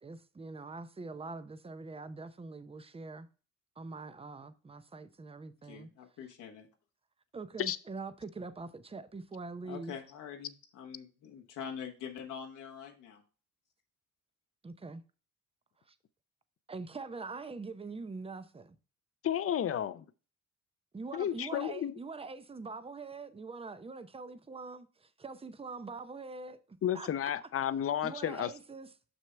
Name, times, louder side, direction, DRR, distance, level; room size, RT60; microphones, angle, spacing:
voice 1, 0.0-3.3 3.8-5.9 7.3-10.0 14.6-15.0 15.9-16.0 16.7-18.8 20.9-27.1 28.0-28.9, right 3 dB, 20° right, 0.7 m, -44 dB
voice 2, 5.6-6.7 9.6-13.2, left 7 dB, 90° left, 1.3 m, -44 dB
voice 3, 19.2-20.0 21.1-21.9 26.8-28.5, left 10 dB, 50° left, 0.6 m, -32 dB
6.5 x 6.2 x 3.4 m
cardioid pair, 90°, 30 cm